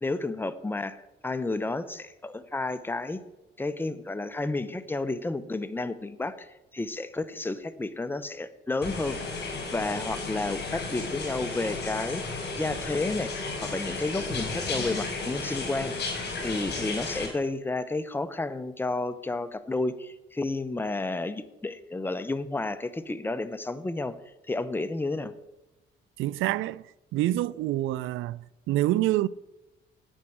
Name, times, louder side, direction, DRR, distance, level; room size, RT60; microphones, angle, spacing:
voice 1, 0.0-3.2 3.6-9.2 9.7-12.2 12.6-15.9 16.4-24.1 24.5-25.3, left 2 dB, 10° left, 0.8 m, -31 dB
sound 1, 8.8-17.3, left 3 dB, 55° left, 4.9 m, -33 dB
voice 2, 26.2-26.8 27.1-29.3, right 15 dB, 85° right, 0.4 m, -27 dB
9.1 x 8.9 x 7.8 m
cardioid pair, 90°, 20 cm